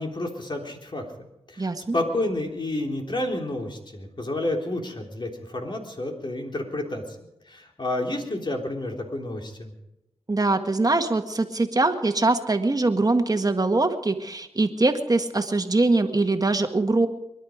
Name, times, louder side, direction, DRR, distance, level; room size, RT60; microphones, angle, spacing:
voice 1, 0.0-7.0 7.5-9.7, left 1 dB, 45° left, 1 dB, 3.5 m, -30 dB
voice 2, 1.6-2.0 10.3-17.1, right 2 dB, 35° right, 6 dB, 1.8 m, -22 dB
24.0 x 11.5 x 5.1 m, 0.87 s
cardioid pair, 45°, 11 cm